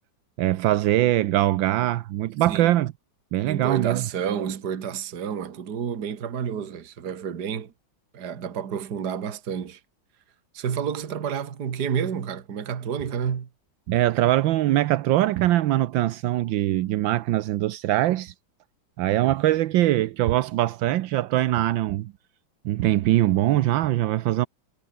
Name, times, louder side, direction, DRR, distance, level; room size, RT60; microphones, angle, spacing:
voice 1, 0.4-2.9 3.3-4.0 13.9-18.3 19.0-22.1 22.6-24.5, right 14 dB, 80° right, 1.4 m, -22 dB
voice 2, 3.4-7.7 8.1-9.8 10.5-13.5, right 7 dB, 60° right, 2.1 m, -30 dB
omnidirectional pair, 2.1 m